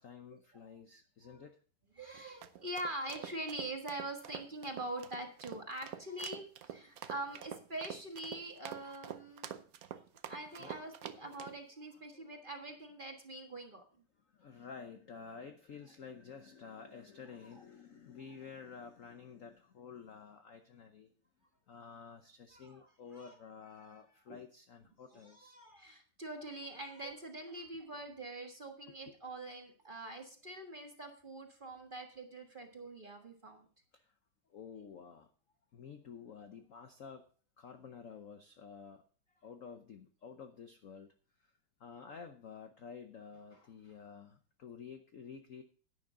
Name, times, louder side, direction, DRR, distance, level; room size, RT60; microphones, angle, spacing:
voice 1, 0.0-1.6 8.8-8.9 10.6-10.8 11.2-11.4 12.1-12.2 14.3-21.1 21.7-25.5 29.1-29.2 33.9-34.0 34.5-35.3 35.7-37.2 37.6-39.0 39.4-41.1 41.8-45.6, left 6 dB, 60° left, 7 dB, 0.8 m, -51 dB
voice 2, 1.9-9.6 10.3-13.8 17.4-17.5 22.5-23.3 24.3-24.4 25.1-33.7, right 1 dB, 25° right, 3 dB, 1.3 m, -44 dB
sound 1, 2.1-11.6, right 9 dB, 70° right, 0.8 m, -47 dB
11.0 x 9.8 x 3.8 m, 0.41 s
omnidirectional pair, 2.4 m